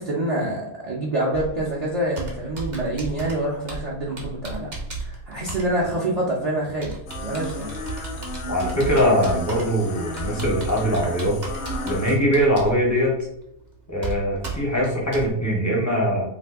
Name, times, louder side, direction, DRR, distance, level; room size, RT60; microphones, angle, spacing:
voice 1, 0.0-4.7 5.0-7.7, right 1 dB, 65° right, -4 dB, 0.4 m, -26 dB
Computer keyboard, 1.3-15.3, right 3 dB, 40° right, 0.7 m, -35 dB
sound 1, 7.1-12.2, left 2 dB, 65° left, 0.7 m, -34 dB
voice 2, 8.5-11.4 11.9-13.1 13.9-16.2, equal, 25° left, -3 dB, 0.3 m, -22 dB
2.5 x 2.5 x 3.5 m, 0.76 s
omnidirectional pair, 1.5 m